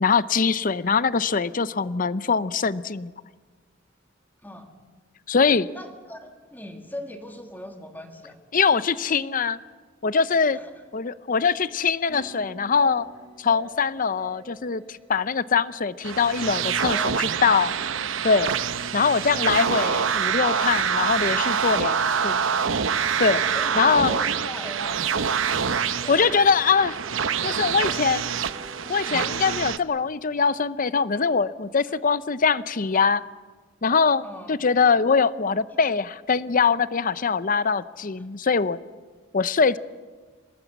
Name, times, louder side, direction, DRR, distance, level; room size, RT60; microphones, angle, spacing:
voice 1, 0.0-3.1 5.3-5.7 8.5-9.6 10.0-10.6 10.9-13.1 13.4-17.7 18.2-18.5 18.9-22.0 22.2-22.4 23.2-23.4 23.8-24.1 26.1-27.0 27.4-28.3 28.9-33.2 33.8-34.2 34.5-38.8 39.3-39.8, left 5 dB, 45° left, 16 dB, 0.7 m, -22 dB
voice 2, 5.7-8.4 10.5-10.7 16.8-17.3 21.9-22.2 23.5-25.2 31.9-32.0 34.2-34.6 35.7-35.8, left 1 dB, 10° left, 4 dB, 2.3 m, -40 dB
sound 1, 12.1-16.5 17.7-21.8 23.2-29.5, right 4 dB, 30° right, 3.1 m, -46 dB
sound 2, 16.0-29.8, right 6 dB, 75° right, 0.9 m, -26 dB
25.0 x 19.5 x 8.2 m, 1.4 s
head